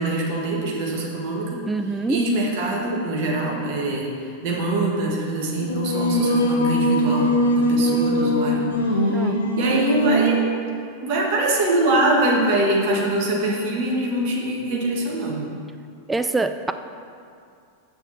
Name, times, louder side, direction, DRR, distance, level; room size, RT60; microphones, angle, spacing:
voice 1, 0.0-1.6 2.1-4.1 4.4-8.6 8.9-10.4 11.0-15.5, right 2 dB, 45° right, -2 dB, 1.8 m, -23 dB
voice 2, 1.7-2.2 9.1-9.4 16.1-16.7, right 3 dB, 10° right, 9 dB, 0.4 m, -24 dB
Singing, 5.6-10.5, equal, 70° left, 0.9 m, -21 dB
6.8 x 6.7 x 5.9 m, 2.3 s
figure-of-eight pair, 90°, 0 cm